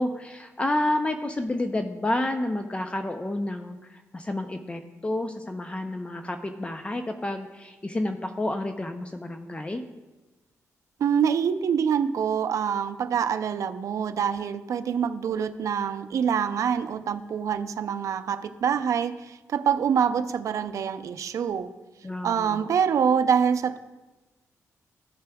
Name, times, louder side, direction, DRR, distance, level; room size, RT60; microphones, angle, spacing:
voice 1, 0.0-9.9 22.0-22.7, left 1 dB, 20° left, 7 dB, 0.5 m, -30 dB
voice 2, 11.0-21.7 22.2-23.8, right 7 dB, 70° right, 11 dB, 0.5 m, -25 dB
14.5 x 6.8 x 2.3 m, 1.1 s
cardioid pair, 85°, 6 cm